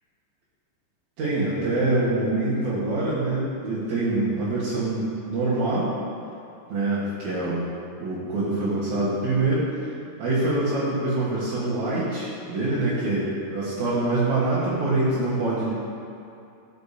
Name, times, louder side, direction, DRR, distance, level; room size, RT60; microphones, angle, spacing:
voice 1, 1.2-5.9 6.7-7.7 8.0-9.7 10.2-15.7, right 2 dB, 60° right, -11 dB, 2.0 m, -25 dB
14.0 x 6.6 x 2.8 m, 2.6 s
omnidirectional pair, 5.4 m